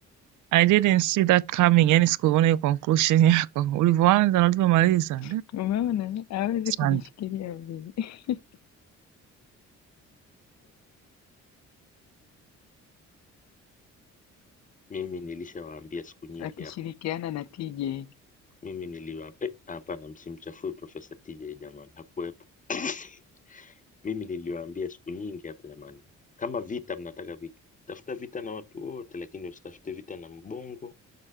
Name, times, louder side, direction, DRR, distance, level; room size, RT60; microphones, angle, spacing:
voice 1, 0.5-5.4 6.8-7.0, right 14 dB, 80° right, 0.5 m, -21 dB
voice 2, 5.2-8.4 16.4-18.1, left 11 dB, 60° left, 0.6 m, -31 dB
voice 3, 14.9-16.7 18.6-21.9 22.2-22.3 22.7-23.2 23.5-23.7 24.0-26.0 26.4-27.5 27.9-30.9, left 5 dB, 25° left, 0.8 m, -36 dB
6.8 x 4.4 x 3.6 m
cardioid pair, 90°, 30 cm